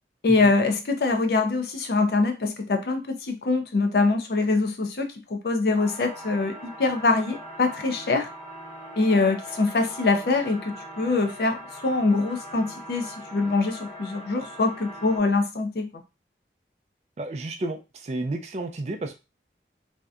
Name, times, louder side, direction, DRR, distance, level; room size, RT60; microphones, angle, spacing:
voice 1, 0.2-8.3 9.0-15.9, left 3 dB, 60° left, 6 dB, 0.4 m, -24 dB
sound 1, 5.7-15.2, equal, 40° left, 0.8 m, -41 dB
voice 2, 17.2-19.2, right 2 dB, 40° right, 6 dB, 0.3 m, -31 dB
2.7 x 2.1 x 2.4 m, 0.27 s
head